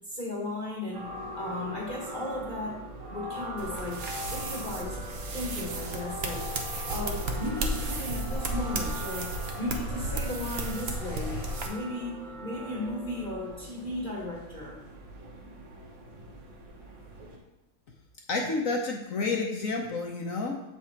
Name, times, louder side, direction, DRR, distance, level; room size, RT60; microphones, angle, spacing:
voice 1, 0.1-2.8 3.1-5.0 5.3-9.3 9.6-14.8, left 2 dB, 30° left, -4 dB, 1.1 m, -36 dB
sound 1, 0.9-17.4, right 1 dB, 75° right, 1.9 m, -42 dB
sound 2, 3.6-11.7, right 2 dB, 55° right, 0.7 m, -34 dB
sound 3, 6.3-11.6, left 6 dB, 80° left, 1.4 m, -47 dB
voice 2, 18.3-20.6, left 3 dB, 55° left, 1 dB, 1.0 m, -30 dB
7.4 x 4.9 x 4.4 m, 0.97 s
omnidirectional pair, 2.1 m